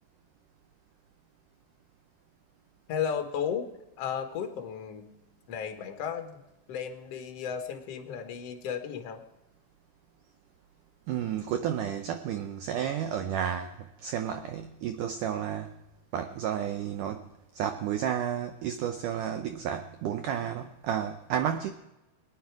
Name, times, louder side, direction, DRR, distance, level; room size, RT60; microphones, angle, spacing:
voice 1, 2.9-3.7 4.0-5.1 5.5-6.4 6.7-9.2, left 7 dB, 60° left, 5 dB, 1.7 m, -34 dB
voice 2, 11.1-15.8 16.1-17.3 17.5-21.7, right 9 dB, 85° right, 7 dB, 1.8 m, -32 dB
23.5 x 9.4 x 4.8 m, 0.99 s
omnidirectional pair, 4.7 m